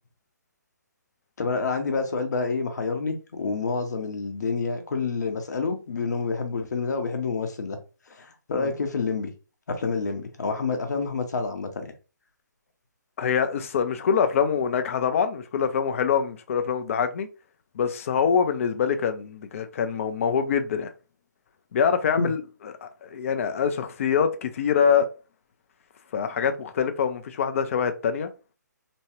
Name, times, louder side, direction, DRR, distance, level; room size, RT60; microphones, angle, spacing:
voice 1, 1.4-7.8 8.1-9.3 9.7-11.9 22.2-22.3, left 4 dB, 65° left, 0.8 m, -28 dB
voice 2, 13.2-17.3 17.8-20.9 21.7-25.1 26.1-28.3, left 7 dB, 45° left, 0.5 m, -25 dB
3.0 x 2.2 x 2.9 m
figure-of-eight pair, 145°, 10 cm